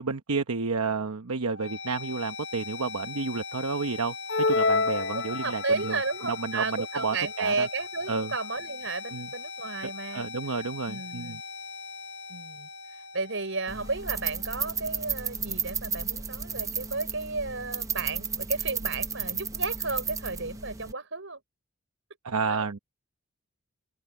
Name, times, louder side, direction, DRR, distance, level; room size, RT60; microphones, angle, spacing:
voice 1, 0.0-7.7 8.1-8.3 9.1-9.3 10.1-11.4 22.2-22.8, right 4 dB, 85° right, 1.0 m, -31 dB
sound 1, 1.4-15.4, left 4 dB, 70° left, 4.0 m, -41 dB
sound 2, 4.3-6.0, left 3 dB, 50° left, 0.5 m, -26 dB
voice 2, 5.1-10.3 10.9-11.4 12.3-12.7 13.1-21.4 22.5-22.8, right 3 dB, 60° right, 5.3 m, -33 dB
sound 3, 13.7-20.9, right 6 dB, 15° right, 0.7 m, -33 dB
open air
head